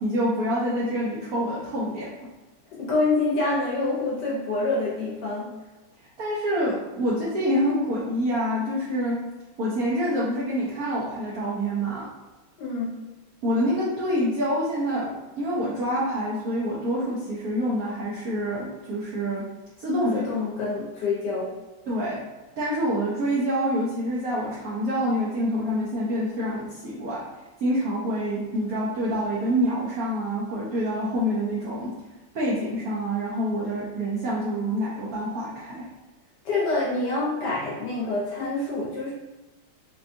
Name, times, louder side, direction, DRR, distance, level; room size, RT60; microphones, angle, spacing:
voice 1, 0.0-2.1 6.2-9.2 9.6-12.1 13.4-19.4 19.8-20.2 21.9-22.2 22.6-27.2 27.6-31.9 32.3-35.8, equal, 80° right, -6 dB, 0.8 m, -26 dB
voice 2, 2.7-5.5 12.6-12.9 20.1-21.5 36.4-39.1, left 3 dB, 65° left, -6 dB, 1.2 m, -26 dB
4.1 x 2.3 x 2.6 m, 1.1 s
omnidirectional pair, 2.4 m